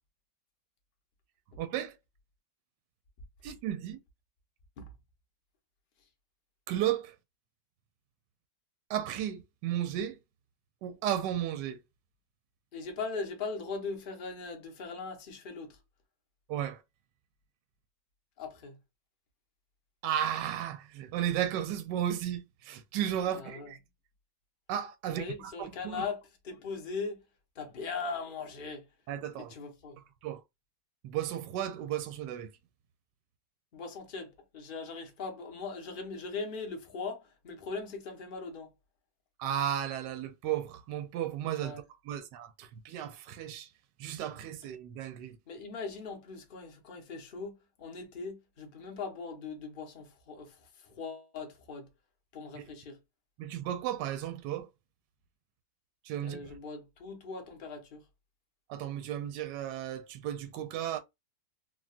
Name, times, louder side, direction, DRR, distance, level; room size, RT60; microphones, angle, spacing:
voice 1, 1.6-1.9 3.4-4.0 6.7-7.1 8.9-10.2 10.8-11.8 16.5-16.8 20.0-23.8 24.7-26.0 29.1-29.5 30.2-30.4 31.0-32.5 39.4-43.7 44.0-45.4 52.6-52.7 53.4-54.7 56.0-56.5 58.7-61.0, right 10 dB, 75° right, 1.1 m, -34 dB
voice 2, 12.7-15.8 18.4-18.8 23.3-23.7 25.1-27.2 27.6-28.8 29.4-30.0 33.7-38.7 41.6-41.8 45.5-51.9 52.3-53.0 56.2-58.0, left 4 dB, 65° left, 0.5 m, -40 dB
3.6 x 2.2 x 2.4 m
omnidirectional pair, 2.1 m